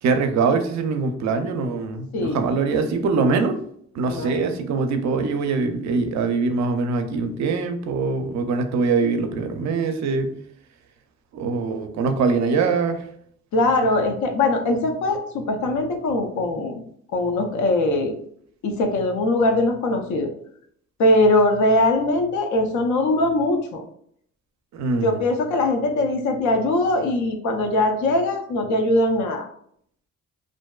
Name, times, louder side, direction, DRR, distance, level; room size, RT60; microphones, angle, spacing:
voice 1, 0.0-3.5 3.9-10.3 11.3-13.1 24.7-25.2, right 4 dB, 65° right, 6 dB, 0.4 m, -23 dB
voice 2, 13.5-16.8 17.1-18.2 18.6-20.3 21.0-23.8 25.0-29.5, left 2 dB, 70° left, 5 dB, 0.5 m, -21 dB
2.5 x 2.2 x 2.2 m, 0.65 s
cardioid pair, 90°, 30 cm